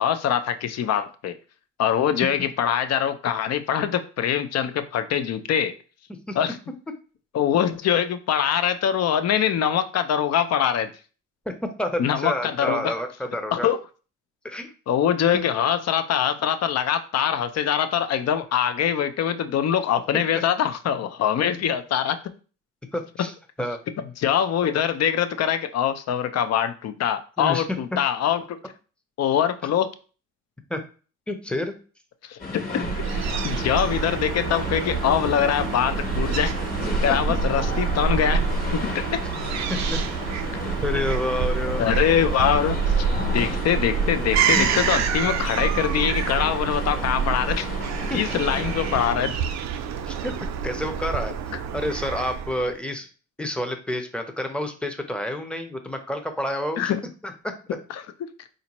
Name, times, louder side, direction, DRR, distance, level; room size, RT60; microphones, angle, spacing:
voice 1, 0.0-1.3 1.8-5.7 6.4-6.6 7.3-10.9 12.0-12.9 13.5-13.8 14.9-22.2 24.2-28.6 29.2-29.9 32.3-32.8 33.2-36.5 37.0-38.4 38.7-39.2 41.8-47.7 48.1-49.3 51.5-51.6 56.8-57.0 57.9-58.0, left 9 dB, 55° left, 10 dB, 0.5 m, -23 dB
voice 2, 11.5-13.7 14.4-14.7 15.3-15.4 22.9-23.3 23.6-23.8 27.4-27.6 30.7-30.8 31.3-31.7 37.1-37.2 39.7-40.0 40.8-41.8 48.1-48.2 50.1-51.3 51.7-53.1 53.4-56.9 57.2-57.5, left 1 dB, 5° left, 6 dB, 0.6 m, -29 dB
sound 1, 32.4-49.1, left 3 dB, 30° left, 1.0 m, -34 dB
Fowl / Gull seagull, 32.8-52.7, right 6 dB, 65° right, 0.5 m, -27 dB
4.3 x 2.6 x 3.0 m, 0.37 s
cardioid pair, 90°, 30 cm